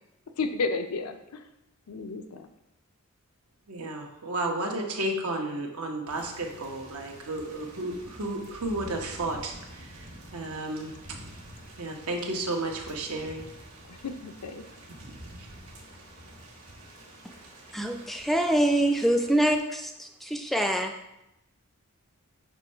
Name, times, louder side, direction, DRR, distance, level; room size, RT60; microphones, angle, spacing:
voice 1, 0.4-1.4 1.9-2.5 13.9-14.6, left 4 dB, 90° left, 7 dB, 0.5 m, -32 dB
voice 2, 3.7-10.1 10.3-10.9 11.8-13.5 15.0-15.1 15.4-15.5, right 2 dB, 80° right, 1 dB, 1.0 m, -33 dB
Thunder / Rain, 6.1-19.6, right 1 dB, 65° right, 1.5 m, -48 dB
voice 3, 17.7-20.9, right 1 dB, ahead, 5 dB, 0.3 m, -25 dB
6.1 x 3.1 x 5.5 m, 0.88 s
head